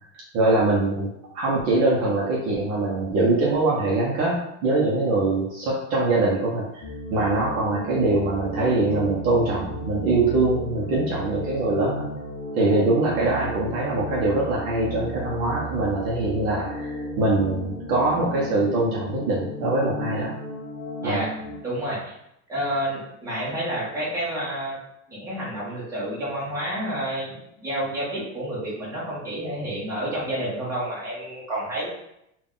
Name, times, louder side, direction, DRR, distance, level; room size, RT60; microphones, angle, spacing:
voice 1, 0.3-1.1 1.3-6.8 7.1-12.0 12.5-20.3 21.0-21.2, right 2 dB, 40° right, -4 dB, 0.7 m, -23 dB
sound 1, 6.8-21.5, equal, 20° left, 0.6 m, -34 dB
voice 2, 21.0-21.3 21.6-22.2 22.5-24.8 25.1-31.9, right 1 dB, 5° right, -8 dB, 1.0 m, -29 dB
3.9 x 2.4 x 3.6 m, 0.80 s
supercardioid pair, 170°, 38 cm